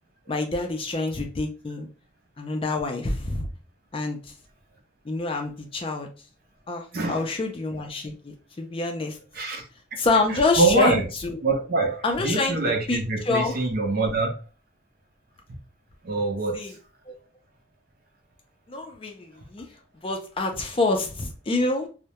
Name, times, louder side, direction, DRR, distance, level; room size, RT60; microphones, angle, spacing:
voice 1, 0.3-1.9 2.4-3.5 3.9-4.2 5.1-6.1 6.7-9.2 10.0-11.4 12.0-12.6 12.9-13.0 13.2-13.6 16.5-16.7 17.1-17.2 18.7-19.7 20.0-21.9, left 3 dB, 25° left, 0.4 m, -26 dB
voice 2, 6.9-7.2 9.3-9.6 9.9-10.0 10.3-11.1 11.4-14.3 16.0-16.6, right 3 dB, 50° right, 0.5 m, -24 dB
2.2 x 2.1 x 2.8 m
head